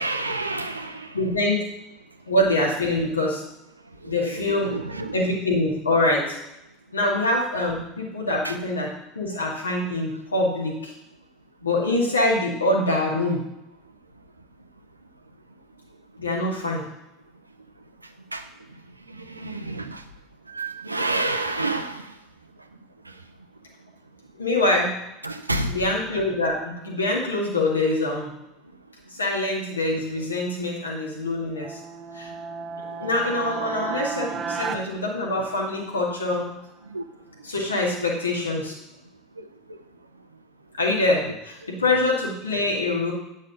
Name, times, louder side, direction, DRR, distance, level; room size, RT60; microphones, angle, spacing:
voice 1, 0.0-1.2 4.0-5.3 8.4-8.6 18.3-18.4 19.1-20.0 20.5-22.1 25.2-25.9 29.2-29.3 33.0-33.1 36.9-37.0 39.4-39.5 39.7-39.8, right 2 dB, 90° right, 7 dB, 0.7 m, -29 dB
voice 2, 1.1-1.6 2.3-3.4 4.0-4.8 5.1-6.4 6.9-10.9 11.6-13.4 16.2-16.9 24.3-25.0 25.7-28.3 29.1-31.8 32.1-32.3 33.0-36.5 37.4-38.8 40.8-43.1, left 2 dB, 85° left, -2 dB, 2.0 m, -24 dB
sound 1, 31.6-35.9, right 6 dB, 35° right, 0.7 m, -34 dB
9.4 x 5.4 x 5.1 m, 0.88 s
figure-of-eight pair, 75°, 0 cm